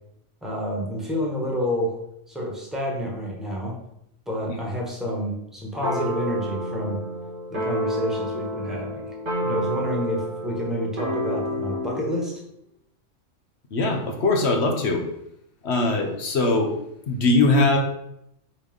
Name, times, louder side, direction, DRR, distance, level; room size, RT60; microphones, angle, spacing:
voice 1, 0.4-1.9 2.3-3.8 4.3-7.0 7.5-9.1 9.4-12.3, equal, ahead, -3 dB, 1.5 m, -29 dB
sound 1, 5.8-12.1, equal, 45° right, 1.7 m, -29 dB
voice 2, 13.7-15.1 15.6-16.7 17.1-17.8, left 2 dB, 60° left, 3 dB, 1.2 m, -21 dB
5.8 x 3.3 x 5.3 m, 0.79 s
omnidirectional pair, 1.3 m